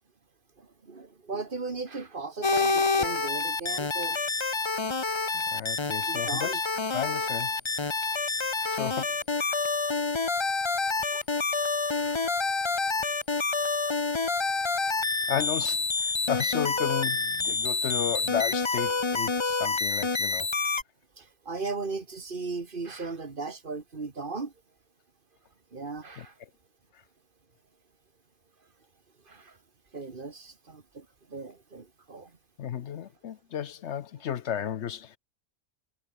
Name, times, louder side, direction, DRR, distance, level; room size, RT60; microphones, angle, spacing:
voice 1, 0.6-4.2 5.1-5.4 6.1-6.6 8.6-8.8 11.9-12.2 21.2-24.5 25.7-26.3 29.3-29.5 29.9-31.1 31.3-32.3, right 4 dB, 45° right, 1.8 m, -37 dB
sound 1, 2.4-20.8, left 4 dB, 25° left, 0.9 m, -28 dB
voice 2, 5.3-6.6 6.9-7.5 8.8-9.5 11.1-11.2 15.3-20.5 26.2-26.3 32.6-35.2, left 9 dB, 70° left, 1.0 m, -33 dB
omnidirectional pair, 1.3 m